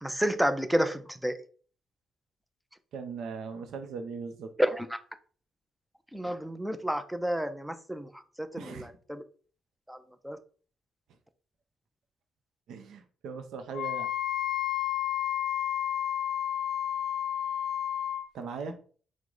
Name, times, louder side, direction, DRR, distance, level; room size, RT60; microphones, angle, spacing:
voice 1, 0.0-1.4 4.6-5.0 6.1-8.1 8.4-9.2 9.9-10.4, equal, 5° right, 0.4 m, -30 dB
voice 2, 2.9-4.5 8.6-8.9 12.7-14.1 18.3-18.8, right 5 dB, 75° right, 0.6 m, -39 dB
Wind instrument woodwind instrument, 13.7-18.3, left 11 dB, 65° left, 0.4 m, -31 dB
4.6 x 2.1 x 3.8 m
cardioid pair, 90°, 0 cm